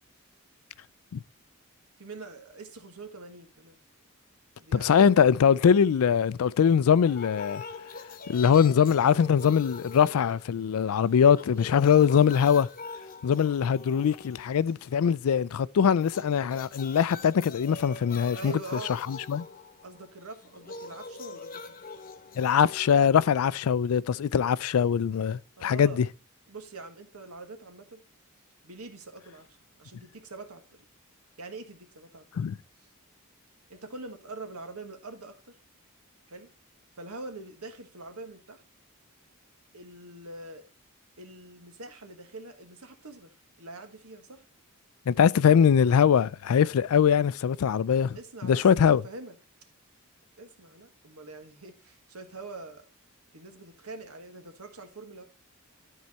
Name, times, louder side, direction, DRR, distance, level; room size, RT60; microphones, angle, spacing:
voice 1, 2.0-3.8 4.6-5.3 18.3-19.3 19.8-21.8 25.6-26.0 26.5-28.0 28.6-29.5 29.8-30.8 31.4-32.4 33.7-35.6 36.3-36.5 37.0-38.6 39.7-40.6 41.2-43.3 43.6-44.4 48.1-49.3 50.4-52.8 53.3-55.2, right 3 dB, 90° right, 1.5 m, -44 dB
voice 2, 4.7-7.6 8.3-12.7 13.2-18.6 18.9-19.5 22.4-26.1 32.4-32.6 45.1-48.2 48.4-49.0, left 7 dB, 75° left, 0.4 m, -22 dB
sound 1, 6.9-10.9 11.2-15.0 16.0-24.0, left 4 dB, 40° left, 0.9 m, -44 dB
12.0 x 4.7 x 4.2 m
head